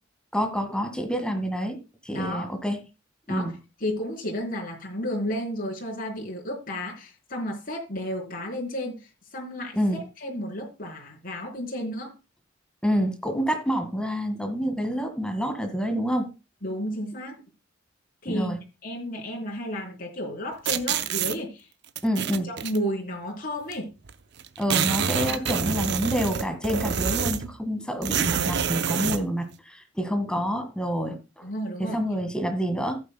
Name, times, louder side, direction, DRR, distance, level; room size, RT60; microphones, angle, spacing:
voice 1, 0.3-1.8 2.0-2.8 3.3-3.5 9.8-10.0 12.8-16.3 18.3-18.6 22.0-22.5 24.6-31.4 31.8-33.0, equal, 5° left, 6 dB, 1.7 m, -27 dB
voice 2, 2.1-2.5 3.3-12.1 16.6-17.4 18.2-18.5 18.8-21.7 22.4-23.9 31.4-32.0, equal, 45° left, -1 dB, 3.8 m, -32 dB
sound 1, 20.7-21.4 22.0-22.8 23.7-23.8 24.1-24.2 24.4-27.5 28.0-29.2, right 7 dB, 60° right, 0.7 m, -27 dB
14.5 x 8.9 x 2.2 m, 0.27 s
head